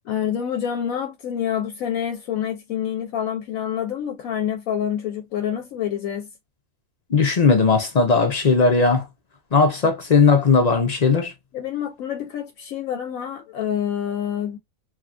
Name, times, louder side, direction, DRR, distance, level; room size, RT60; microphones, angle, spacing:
voice 1, 0.0-6.3 11.5-14.6, left 9 dB, 75° left, 1.0 m, -27 dB
voice 2, 7.1-9.0 9.5-11.3, left 4 dB, 55° left, 0.4 m, -17 dB
3.4 x 2.3 x 2.5 m
omnidirectional pair, 1.5 m